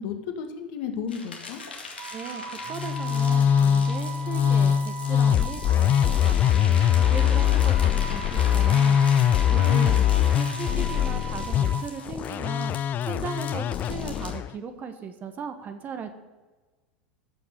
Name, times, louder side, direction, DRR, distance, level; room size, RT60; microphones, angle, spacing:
voice 1, 0.0-1.6 9.6-10.2 10.7-10.9, left 7 dB, 60° left, 5 dB, 1.8 m, -34 dB
sound 1, 1.1-14.3, left 4 dB, 85° left, 2.2 m, -41 dB
Wind instrument woodwind instrument, 2.0-11.9, right 5 dB, 80° right, 2.2 m, -39 dB
voice 2, 2.1-9.0 9.5-9.9 10.3-12.7 13.0-16.2, right 6 dB, 35° right, 8 dB, 1.3 m, -37 dB
Musical instrument, 2.7-14.5, left 9 dB, 35° left, 0.4 m, -22 dB
14.5 x 6.0 x 6.9 m, 1.2 s
figure-of-eight pair, 85°, 5 cm